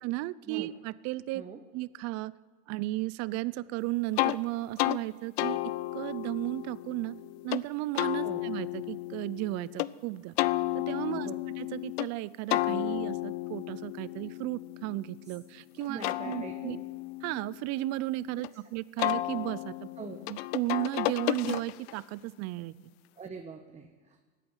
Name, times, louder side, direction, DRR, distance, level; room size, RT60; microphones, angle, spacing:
voice 1, 0.0-1.4 1.7-2.3 2.7-5.6 5.9-7.2 7.4-10.4 10.7-11.3 11.6-16.8 17.2-19.7 20.3-22.7, right 18 dB, 55° right, 19 dB, 0.6 m, -34 dB
sound 1, 4.2-4.4 4.8-5.0 5.4-7.6 8.0-9.9 10.4-12.1 12.5-15.4 15.8-18.5 19.0-22.0, left 18 dB, 80° left, 0.6 m, -33 dB
voice 2, 15.9-16.9 20.0-20.2 23.2-24.2, right 5 dB, 20° right, 4 dB, 1.2 m, -43 dB
16.5 x 9.2 x 9.0 m, 1.3 s
supercardioid pair, 120°, 31 cm